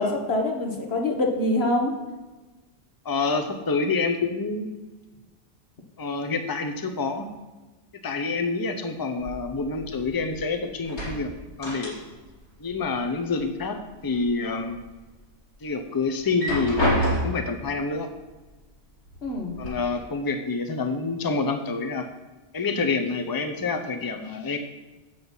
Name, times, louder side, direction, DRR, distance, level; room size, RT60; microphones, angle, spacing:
voice 1, 0.0-1.9 19.2-19.6, left 2 dB, 70° left, 1 dB, 1.7 m, -25 dB
voice 2, 3.0-4.7 6.0-7.3 8.0-11.3 11.6-12.0 12.6-14.8 15.6-18.1 19.6-22.1 22.5-24.6, left 4 dB, 25° left, 6 dB, 0.7 m, -27 dB
sound 1, 9.2-10.5 10.8-12.4 12.6-13.6 14.1-14.8 15.3-15.4 16.2-17.6 18.5-18.6 19.1-19.7, equal, 85° left, 3.1 m, -29 dB
7.8 x 6.9 x 5.5 m, 1.2 s
omnidirectional pair, 1.1 m